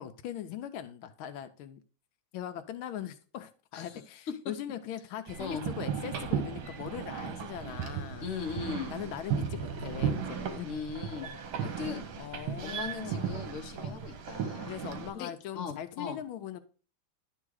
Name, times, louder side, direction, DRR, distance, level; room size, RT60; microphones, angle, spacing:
voice 1, 0.0-1.8 2.3-8.3 8.9-10.7 11.2-11.8 12.2-13.4 13.8-14.0 14.7-16.6, left 10 dB, 80° left, 1.4 m, -41 dB
Windmill Caruso Garage, 5.3-15.1, right 7 dB, 70° right, 1.7 m, -36 dB
voice 2, 8.2-8.9 10.6-11.3 11.6-12.1 12.6-14.7 15.1-16.2, left 6 dB, 50° left, 1.0 m, -39 dB
11.0 x 3.6 x 4.7 m
omnidirectional pair, 2.3 m